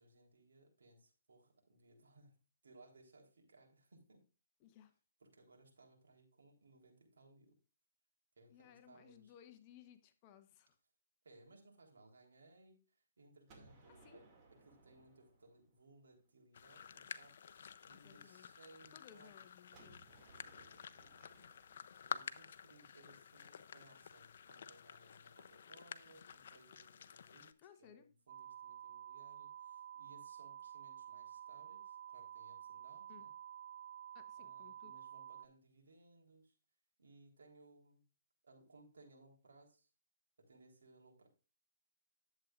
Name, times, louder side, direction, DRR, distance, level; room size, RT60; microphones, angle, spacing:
voice 1, 0.0-2.4 2.6-4.2 5.2-7.5 8.4-9.3 11.2-14.2 14.5-17.5 17.9-19.3 20.3-20.7 21.4-21.5 22.1-27.5 27.8-33.3 34.4-36.5 37.0-38.0 38.4-39.9 40.4-41.3, right 2 dB, 80° right, 1 dB, 3.7 m, -64 dB
voice 2, 4.6-4.9 8.5-10.8 13.9-14.2 17.9-18.5 18.9-20.1 27.6-28.1 33.1-33.3 34.1-34.9, left 10 dB, 30° left, 9 dB, 1.0 m, -61 dB
Gunshot gunfire, 13.5-16.3 19.7-23.5, right 3 dB, 25° right, 2.3 m, -65 dB
sound 1, 16.5-27.5, left 7 dB, 60° left, 0.6 m, -51 dB
sound 2, 28.3-35.5, right 10 dB, 45° right, 0.6 m, -51 dB
11.0 x 7.9 x 2.5 m, 0.33 s
hypercardioid pair, 155°, 0 cm